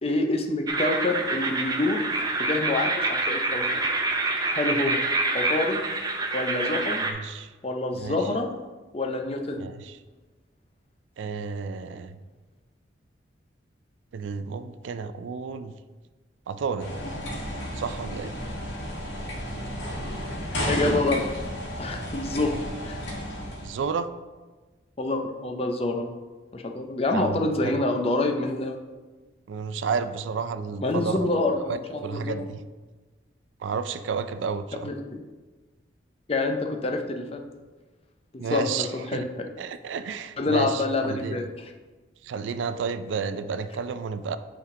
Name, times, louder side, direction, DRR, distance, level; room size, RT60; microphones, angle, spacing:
voice 1, 0.0-2.1 2.4-3.7 4.5-5.0 5.3-5.8 6.3-7.0 7.6-8.5 8.9-9.6 20.7-21.2 21.8-22.6 22.8-23.0 25.0-26.1 26.5-28.8 30.8-32.3 34.8-35.2 36.3-37.4 38.5-39.5 40.4-41.5, left 2 dB, 30° left, 4 dB, 0.5 m, -27 dB
sound 1, 0.7-7.1, right 2 dB, 20° right, 0.5 m, -27 dB
voice 2, 7.0-7.5 8.0-8.2 9.6-10.0 11.2-12.2 14.1-15.7 16.5-16.9 17.7-18.3 22.4-22.6 23.6-24.1 27.1-27.7 29.5-31.3 31.7-32.6 33.6-34.9 38.4-39.3 39.6-41.4 42.2-44.4, right 5 dB, 85° right, 11 dB, 0.4 m, -31 dB
sound 2, 16.8-23.8, equal, 70° left, 1.5 m, -32 dB
8.3 x 3.6 x 3.7 m, 1.3 s
head